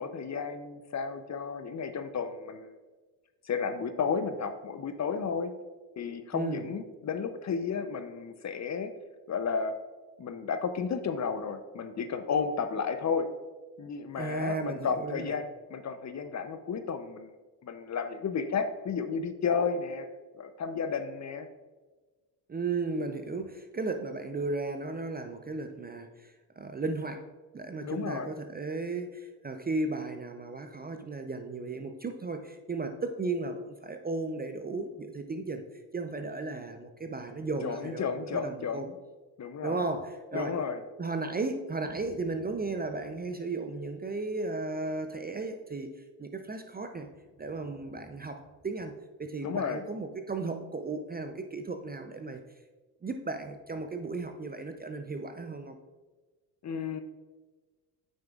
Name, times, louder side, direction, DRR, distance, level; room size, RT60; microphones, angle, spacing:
voice 1, 0.0-2.7 3.4-5.5 6.0-8.9 9.3-9.7 10.2-13.3 13.8-17.3 17.6-20.1 20.4-21.5 27.8-28.3 37.6-38.9 39.4-39.9 40.3-40.8 49.4-49.8 56.6-57.0, left 6 dB, 35° left, 9 dB, 0.7 m, -32 dB
voice 2, 6.3-6.7 14.1-15.3 22.5-27.3 27.5-35.6 35.9-38.9 39.6-40.6 41.0-47.1 47.4-52.4 53.0-55.8, right 3 dB, 20° right, 7 dB, 0.5 m, -35 dB
8.6 x 6.3 x 2.4 m, 1.3 s
hypercardioid pair, 60°, 49 cm